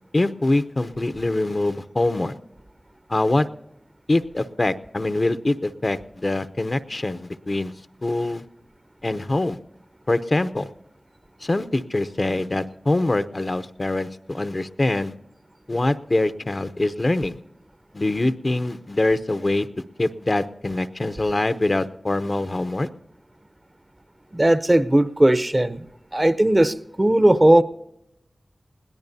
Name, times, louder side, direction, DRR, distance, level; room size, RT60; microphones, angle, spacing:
voice 1, 0.1-2.3 3.1-3.5 4.1-7.7 8.0-8.4 9.0-9.6 10.1-10.7 11.4-15.1 15.7-17.3 17.9-19.7 20.0-22.9, left 2 dB, 50° left, 12 dB, 0.7 m, -24 dB
voice 2, 24.3-25.8 26.1-27.6, right 1 dB, 30° right, 13 dB, 0.8 m, -17 dB
21.5 x 17.0 x 2.7 m, 0.87 s
cardioid pair, 40°, 0 cm